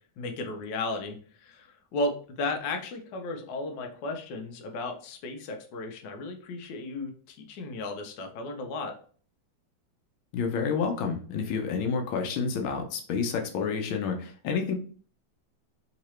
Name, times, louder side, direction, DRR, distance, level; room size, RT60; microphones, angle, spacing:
voice 1, 0.2-8.9, left 2 dB, 70° left, 3 dB, 1.3 m, -34 dB
voice 2, 10.3-14.7, left 5 dB, 85° left, 4 dB, 1.4 m, -29 dB
3.7 x 2.9 x 3.0 m, 0.43 s
omnidirectional pair, 2.2 m